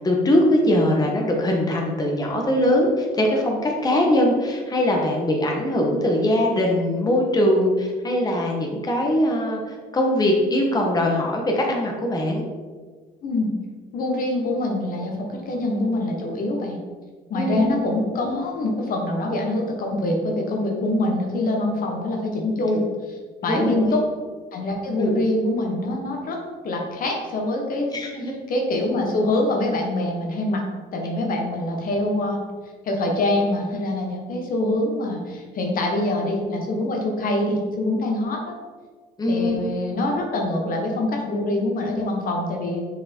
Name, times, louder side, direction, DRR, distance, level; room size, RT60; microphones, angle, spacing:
voice 1, 0.0-12.4 17.3-17.7 23.4-24.0 25.0-25.2 27.9-28.3 39.2-39.6, left 1 dB, 25° left, 0 dB, 1.3 m, -21 dB
voice 2, 13.9-16.8 17.3-24.0 24.5-26.4 26.6-27.9 28.5-30.6 30.9-32.4 32.8-38.5 39.3-42.8, left 1 dB, 55° left, 1 dB, 1.3 m, -24 dB
6.6 x 4.8 x 4.5 m, 1.5 s
cardioid pair, 110°, 17 cm